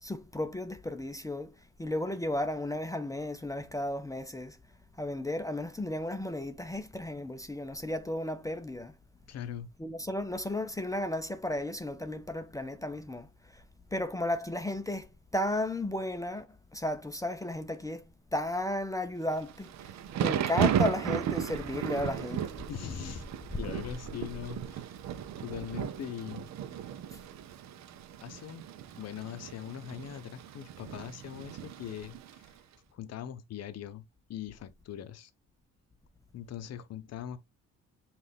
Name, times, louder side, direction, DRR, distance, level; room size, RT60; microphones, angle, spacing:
voice 1, 0.0-4.6 5.0-9.0 9.8-13.6 13.9-22.6 23.6-23.7 27.1-27.2, left 1 dB, 10° left, 0.5 m, -34 dB
voice 2, 9.3-9.7 22.7-23.2 23.6-24.9 25.4-26.5 28.2-28.7 29.0-32.5 32.9-34.0 34.3-35.3 36.3-37.4, left 10 dB, 55° left, 0.7 m, -41 dB
Thunder / Rain, 19.4-32.5, right 9 dB, 65° right, 0.6 m, -35 dB
5.6 x 2.5 x 3.3 m
cardioid pair, 90°, 30 cm